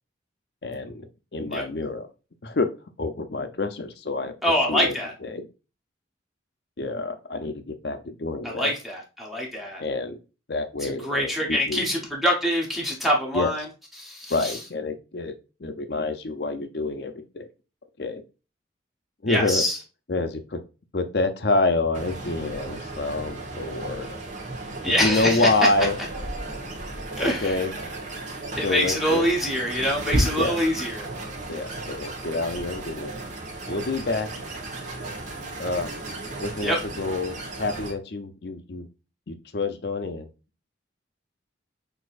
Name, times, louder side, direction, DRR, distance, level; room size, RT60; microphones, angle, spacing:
voice 1, 0.6-1.1 1.3-2.1 2.4-2.7 3.0-4.3 4.7-4.9 5.2-5.5 6.8-8.7 9.8-10.2 10.5-11.9 13.3-13.5 14.3-17.5 18.0-18.2 19.2-19.6 20.1-20.6 20.9-24.2 24.9-26.0 27.2-27.7 28.6-29.2 30.4-30.6 31.5-33.1 33.7-34.3 35.6-35.9 36.4-38.9 39.3-40.3, left 3 dB, 60° left, 8 dB, 0.6 m, -27 dB
voice 2, 4.4-5.1 8.4-9.8 10.8-13.6 14.0-14.6 19.3-19.8 24.8-25.5 27.2-27.5 28.6-31.1 36.6-36.8, equal, ahead, -2 dB, 1.0 m, -25 dB
sound 1, 21.9-37.9, right 2 dB, 40° right, 1.2 m, -33 dB
6.2 x 2.8 x 2.5 m, 0.31 s
head